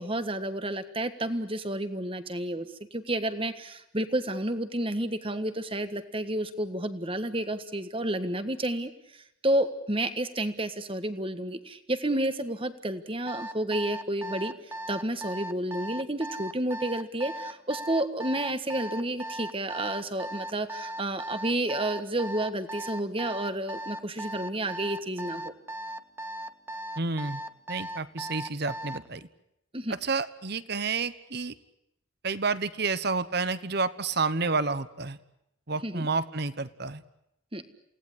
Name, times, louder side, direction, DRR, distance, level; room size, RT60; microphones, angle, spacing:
voice 1, 0.0-8.9 9.4-14.5 14.9-25.5 29.7-29.9 35.8-36.1 37.5-37.6, right 1 dB, 25° right, 10 dB, 1.5 m, -30 dB
Alarm, 13.3-29.1, right 1 dB, 10° right, 1.0 m, -37 dB
voice 2, 27.0-27.4 27.7-29.3 30.0-31.5 32.2-35.2 35.7-37.0, right 4 dB, 50° right, 14 dB, 1.1 m, -30 dB
28.5 x 18.0 x 9.9 m, 0.82 s
head